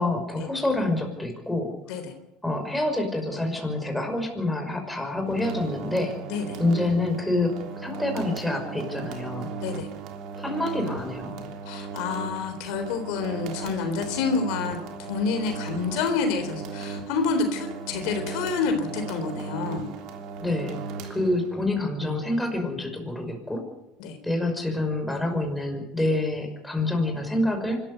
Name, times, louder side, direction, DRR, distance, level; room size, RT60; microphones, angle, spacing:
voice 1, 0.0-1.7 2.4-6.2 6.6-9.5 10.4-11.4 20.4-20.8 21.1-23.7 24.2-27.8, left 2 dB, 5° left, 3 dB, 5.7 m, -27 dB
sound 1, 5.2-21.7, right 5 dB, 60° right, 3.4 m, -37 dB
voice 2, 11.7-19.9 24.0-24.2, left 5 dB, 70° left, 6 dB, 3.8 m, -28 dB
25.0 x 14.0 x 8.2 m, 0.89 s
supercardioid pair, 105°, 0 cm